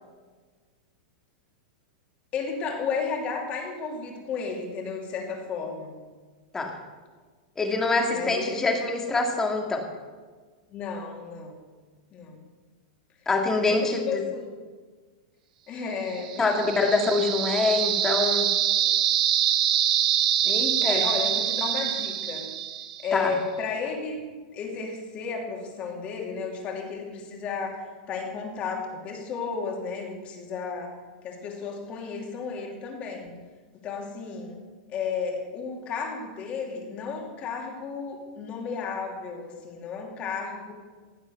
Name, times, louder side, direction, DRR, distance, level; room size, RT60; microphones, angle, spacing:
voice 1, 2.3-6.0 8.1-8.6 10.7-11.6 12.1-12.4 13.6-14.6 15.7-17.0 20.8-22.5 23.0-24.2 24.5-30.9 31.2-33.3 33.7-34.6 34.9-40.7, left 5 dB, 25° left, 1 dB, 2.7 m, -33 dB
voice 2, 7.6-9.8 13.3-14.2 16.4-18.5 20.4-21.0 23.1-23.3, left 3 dB, 10° left, 2 dB, 1.9 m, -25 dB
sound 1, 16.2-23.1, right 10 dB, 65° right, 1.4 m, -25 dB
16.0 x 8.9 x 6.8 m, 1.4 s
supercardioid pair, 160°, 5 cm